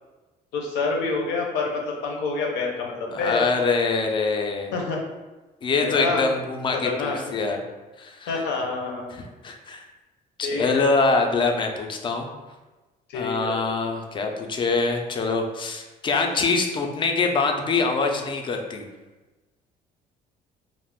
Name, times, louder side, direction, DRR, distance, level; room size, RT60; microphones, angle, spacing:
voice 1, 0.5-3.5 4.7-5.0 5.8-6.3 6.7-7.2 8.3-9.1 10.4-10.9 13.1-13.6 16.2-16.4, left 4 dB, 85° left, 0 dB, 0.6 m, -27 dB
voice 2, 3.1-4.7 5.6-7.6 8.0-8.3 9.4-9.8 10.4-12.3 13.1-18.8, left 4 dB, 30° left, 3 dB, 0.4 m, -24 dB
2.3 x 2.0 x 3.5 m, 1.2 s
cardioid pair, 110°, 17 cm